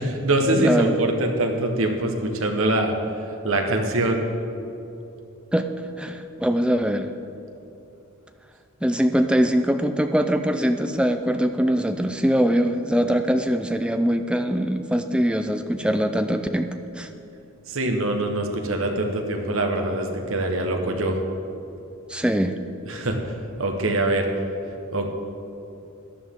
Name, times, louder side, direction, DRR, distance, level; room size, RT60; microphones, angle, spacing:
voice 1, 0.0-2.9 3.4-4.2 17.7-21.2 22.9-23.3 23.6-24.3 24.9-25.0, right 1 dB, 65° right, 3 dB, 1.2 m, -23 dB
voice 2, 0.6-1.0 5.5-5.7 6.0-7.1 8.8-16.7 17.0-17.1 22.1-22.6, equal, 5° right, 7 dB, 0.4 m, -22 dB
14.0 x 11.0 x 3.7 m, 2.7 s
head